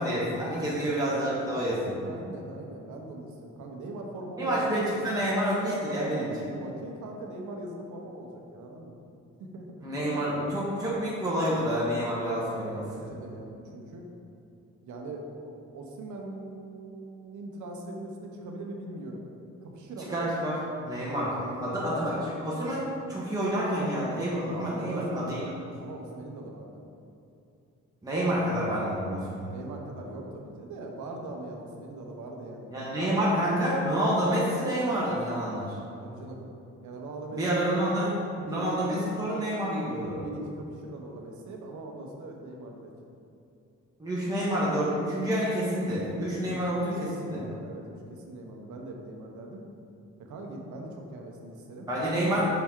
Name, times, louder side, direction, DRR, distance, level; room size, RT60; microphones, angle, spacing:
voice 1, 0.0-2.0 4.4-6.5 9.8-13.0 20.1-25.4 28.0-29.5 32.7-35.8 37.3-40.2 44.0-46.9 47.2-47.4 51.9-52.4, equal, 10° right, -7 dB, 1.3 m, -28 dB
voice 2, 2.0-4.5 4.9-5.1 6.6-9.0 9.4-9.7 12.5-14.0 14.8-19.2 19.6-20.2 21.5-21.9 24.7-25.5 25.8-26.8 29.5-33.1 36.0-36.5 36.8-37.4 38.4-39.1 40.1-42.9 46.4-46.6 47.0-49.6 50.2-51.9, right 2 dB, 75° right, 1 dB, 1.0 m, -41 dB
5.9 x 4.4 x 3.7 m, 2.6 s
cardioid pair, 90°, 30 cm